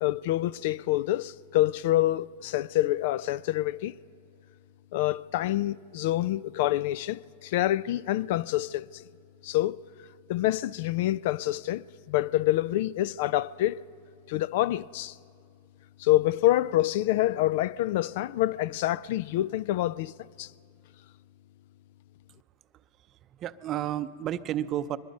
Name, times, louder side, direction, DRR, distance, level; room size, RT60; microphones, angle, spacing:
voice 1, 0.0-4.0 4.9-9.0 9.4-9.8 10.3-13.8 14.3-15.2 16.0-20.1 20.4-20.5, left 15 dB, 60° left, 0.4 m, -27 dB
voice 2, 23.1-25.0, right 11 dB, 35° right, 0.6 m, -32 dB
23.0 x 21.0 x 5.4 m
supercardioid pair, 135°, 0 cm